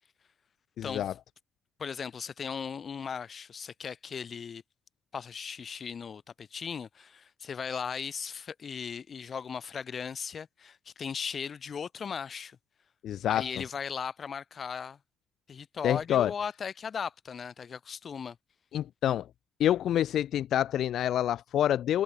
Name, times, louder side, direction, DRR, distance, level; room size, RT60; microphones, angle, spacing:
voice 1, 0.8-1.1 13.0-13.4 15.8-16.3 18.7-19.3 19.6-22.0, left 11 dB, 65° left, 0.8 m, -27 dB
voice 2, 1.8-4.6 5.1-12.6 13.3-15.0 15.5-18.4, left 6 dB, 50° left, 3.2 m, -37 dB
hypercardioid pair, 55°, 0 cm